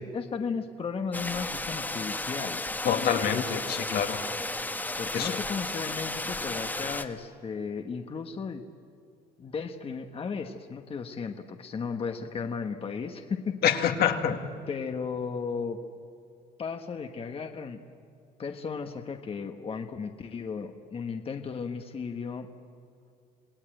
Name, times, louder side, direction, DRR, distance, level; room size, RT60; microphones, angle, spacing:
voice 1, 0.0-2.6 5.0-8.6 9.4-13.6 14.7-15.8 16.6-17.8 18.4-22.5, left 5 dB, 35° left, 5 dB, 1.3 m, -35 dB
sound 1, 1.1-7.1, left 2 dB, 10° left, 1.4 m, -33 dB
voice 2, 2.8-4.2 5.1-5.4 13.6-14.4, left 8 dB, 70° left, 5 dB, 2.2 m, -26 dB
28.0 x 18.0 x 9.0 m, 2.5 s
cardioid pair, 110°, 17 cm